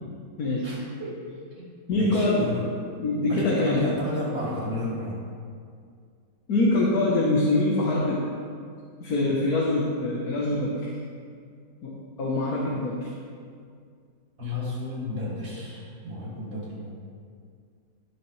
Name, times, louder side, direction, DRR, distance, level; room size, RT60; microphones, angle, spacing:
voice 1, 0.6-1.2 1.6-1.7 2.0-2.6 3.2-5.1 14.4-16.9, left 2 dB, 90° right, -7 dB, 3.7 m, -32 dB
voice 2, 1.9-2.5 3.0-3.9 6.5-8.3 9.0-10.9 11.8-13.1, left 2 dB, 55° left, -3 dB, 1.6 m, -24 dB
17.0 x 6.5 x 3.2 m, 2.2 s
omnidirectional pair, 2.0 m